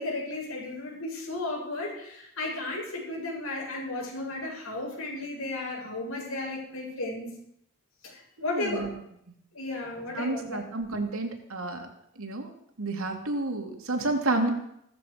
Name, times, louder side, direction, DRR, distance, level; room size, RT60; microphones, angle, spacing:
voice 1, 0.0-7.4 8.0-8.9 9.5-10.7, left 2 dB, 80° left, -2 dB, 7.3 m, -34 dB
voice 2, 8.4-8.9 10.1-11.9 12.2-12.5 12.8-14.5, right 2 dB, 80° right, 3 dB, 2.8 m, -30 dB
16.0 x 14.0 x 5.2 m, 0.74 s
head